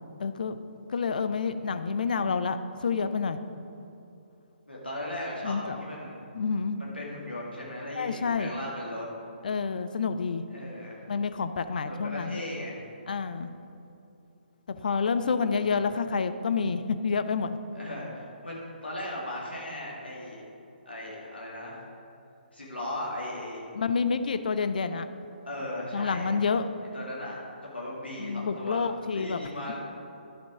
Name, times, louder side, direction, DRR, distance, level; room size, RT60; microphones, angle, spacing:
voice 1, 0.2-0.6 0.9-2.6 2.8-3.4 5.4-5.8 6.3-6.8 7.9-8.5 9.4-10.4 11.1-12.4 13.1-13.5 14.7-17.6 23.8-25.1 25.9-26.6 28.2-29.5, left 5 dB, 55° left, 10 dB, 0.5 m, -28 dB
voice 2, 4.7-6.2 6.8-9.1 10.5-11.0 11.9-12.8 15.2-15.5 17.7-20.4 20.9-21.8 22.5-23.7 25.4-26.3 26.9-28.8 29.1-29.8, left 1 dB, 85° left, -5 dB, 2.1 m, -37 dB
12.0 x 5.2 x 4.8 m, 2.8 s
figure-of-eight pair, 135°, 6 cm